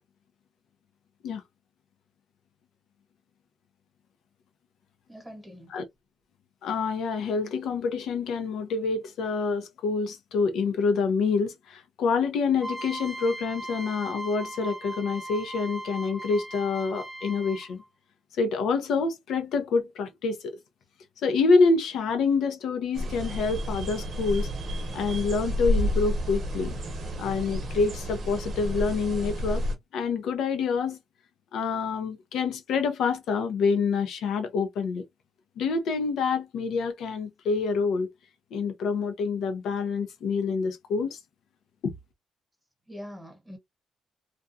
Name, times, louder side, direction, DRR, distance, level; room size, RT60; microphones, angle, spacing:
voice 1, 5.1-5.7 42.9-43.6, equal, 5° left, 1.2 m, -43 dB
voice 2, 6.6-17.8 18.4-20.6 21.2-24.5 24.9-26.7 27.2-29.6 29.9-31.0 31.5-35.0 35.6-38.1 38.5-41.2 41.8-41.9, left 4 dB, 75° left, 0.6 m, -27 dB
sound 1, 12.6-17.8, right 1 dB, 15° right, 0.9 m, -38 dB
sound 2, 22.9-29.8, equal, 50° right, 0.7 m, -30 dB
2.4 x 2.2 x 2.6 m
cardioid pair, 90°, 0 cm